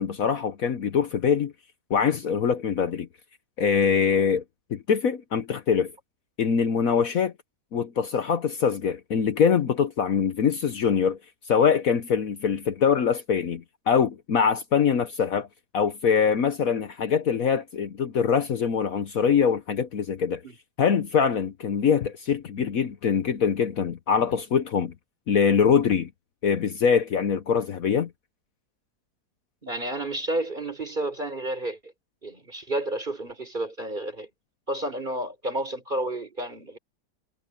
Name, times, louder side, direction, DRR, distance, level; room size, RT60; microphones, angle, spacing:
voice 1, 0.0-1.5 1.9-3.1 3.6-4.4 4.7-5.9 6.4-7.3 7.7-11.2 11.5-15.5 15.7-20.4 20.8-24.9 25.3-26.1 26.4-28.1, left 7 dB, 60° left, 1.3 m, -23 dB
voice 2, 29.6-31.9 32.2-34.3 34.7-36.8, right 1 dB, 30° right, 3.9 m, -31 dB
omnidirectional pair, 1.7 m